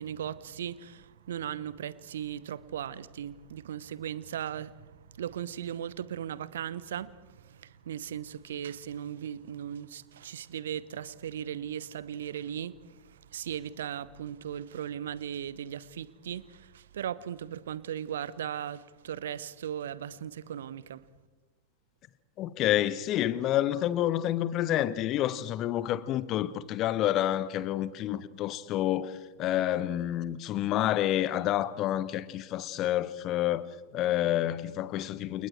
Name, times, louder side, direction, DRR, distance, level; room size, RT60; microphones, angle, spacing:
voice 1, 0.0-21.0, right 9 dB, 60° right, 1.0 m, -38 dB
voice 2, 22.4-35.5, left 13 dB, 35° left, 1.1 m, -29 dB
30.0 x 29.0 x 4.7 m
figure-of-eight pair, 90°, 0 cm